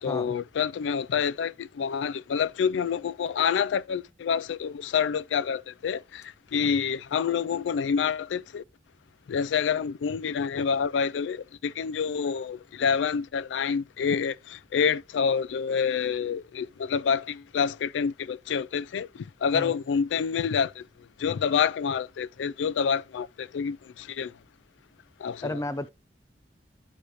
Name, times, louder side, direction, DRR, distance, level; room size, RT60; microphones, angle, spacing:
voice 1, 0.0-6.2 6.5-8.6 9.3-20.8 21.2-24.3 25.2-25.6, left 6 dB, 85° left, 0.3 m, -27 dB
voice 2, 25.4-25.9, left 1 dB, 15° left, 0.5 m, -32 dB
9.9 x 6.4 x 3.0 m
head